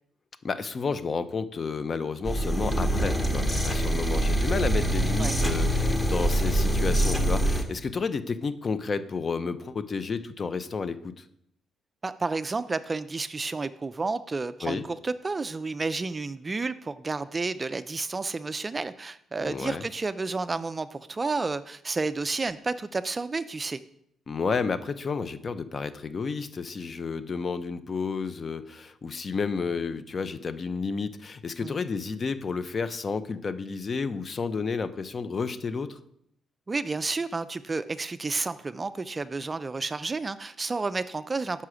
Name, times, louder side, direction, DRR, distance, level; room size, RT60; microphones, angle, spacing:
voice 1, 0.4-11.2 14.6-14.8 19.4-19.8 24.3-36.0, left 5 dB, 40° left, 12 dB, 0.5 m, -31 dB
sound 1, 2.2-7.6, right 1 dB, 15° left, 1.1 m, -25 dB
voice 2, 12.0-23.8 31.6-31.8 36.7-41.6, right 3 dB, 25° right, 13 dB, 0.3 m, -31 dB
5.5 x 4.8 x 6.3 m, 0.72 s
cardioid pair, 90°, 0 cm